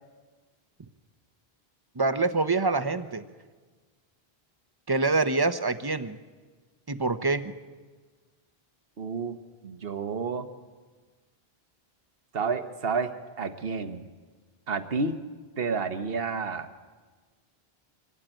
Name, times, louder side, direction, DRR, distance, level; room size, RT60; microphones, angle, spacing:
voice 1, 2.0-3.2 4.9-6.2 6.9-7.5, right 3 dB, 25° right, 11 dB, 0.8 m, -25 dB
voice 2, 9.0-10.5 12.3-14.1 14.7-15.2 15.6-16.7, right 4 dB, 70° right, 9 dB, 1.4 m, -30 dB
24.5 x 17.0 x 9.0 m, 1.4 s
omnidirectional pair, 1.0 m